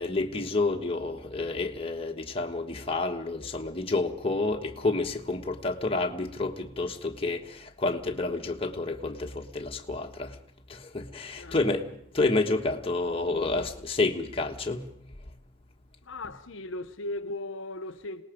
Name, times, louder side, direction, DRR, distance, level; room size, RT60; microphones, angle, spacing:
voice 1, 0.0-10.4 10.7-14.9, left 3 dB, 25° left, 1.4 m, -29 dB
voice 2, 16.0-18.2, left 2 dB, 60° left, 1.0 m, -37 dB
27.0 x 19.0 x 5.2 m
head